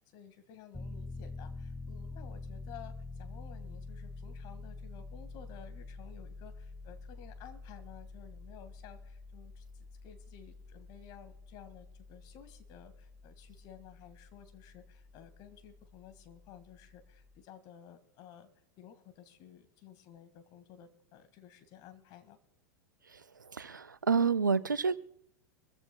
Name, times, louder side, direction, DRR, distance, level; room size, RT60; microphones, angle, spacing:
voice 1, 0.0-18.5 18.8-22.4, left 9 dB, 45° left, 9 dB, 1.8 m, -54 dB
Piano, 0.7-17.4, left 3 dB, 5° left, 0.5 m, -47 dB
voice 2, 23.1-25.0, right 5 dB, 85° right, 18 dB, 0.5 m, -29 dB
25.0 x 14.5 x 2.3 m, 0.71 s
figure-of-eight pair, 90°, 10 cm